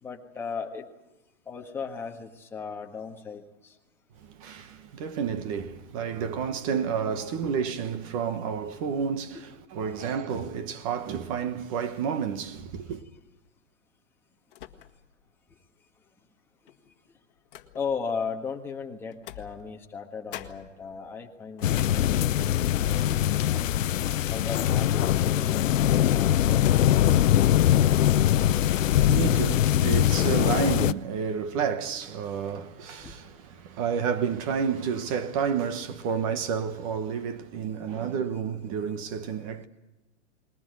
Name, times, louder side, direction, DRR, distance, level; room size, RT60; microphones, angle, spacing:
voice 1, 0.0-0.9 1.4-3.8 7.4-7.5 17.7-23.7 24.3-27.3 33.0-33.1, left 5 dB, 5° left, 1.5 m, -37 dB
voice 2, 4.2-13.0 28.2-39.7, right 7 dB, 25° right, 1.2 m, -30 dB
sound 1, 13.2-13.5 14.5-15.2 15.6-15.7 16.7-18.1 19.1-20.0 20.3-22.6 23.1-23.2 23.5-23.9, left 12 dB, 45° left, 1.6 m, -46 dB
sound 2, 21.6-30.9, left 11 dB, 85° left, 0.8 m, -22 dB
21.5 x 19.5 x 9.5 m
hypercardioid pair, 170°, 38 cm